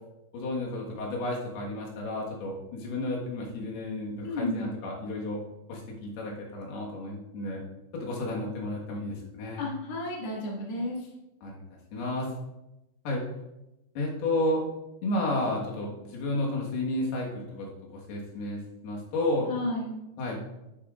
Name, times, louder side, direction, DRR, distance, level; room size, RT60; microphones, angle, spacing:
voice 1, 0.3-5.4 5.7-7.6 7.9-9.7 11.4-11.6 11.9-12.3 13.1-13.2 14.0-14.6 15.0-17.7 17.9-19.5 20.2-20.4, left 1 dB, 90° left, -2 dB, 3.5 m, -32 dB
voice 2, 4.2-4.7 9.6-11.0 19.5-20.0, left 2 dB, 45° left, -4 dB, 2.4 m, -32 dB
10.5 x 9.4 x 2.4 m, 0.95 s
omnidirectional pair, 4.4 m